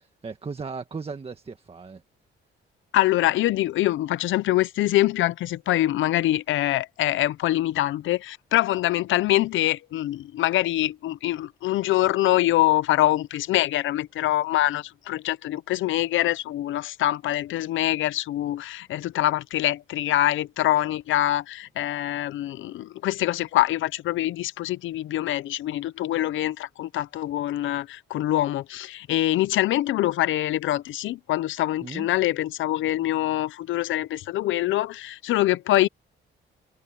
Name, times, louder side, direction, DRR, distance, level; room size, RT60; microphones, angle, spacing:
voice 1, 0.0-2.0 31.8-32.1, right 4 dB, 30° right, 1.7 m, -36 dB
voice 2, 2.9-35.9, left 14 dB, 80° left, 0.8 m, -24 dB
cardioid pair, 90°, 20 cm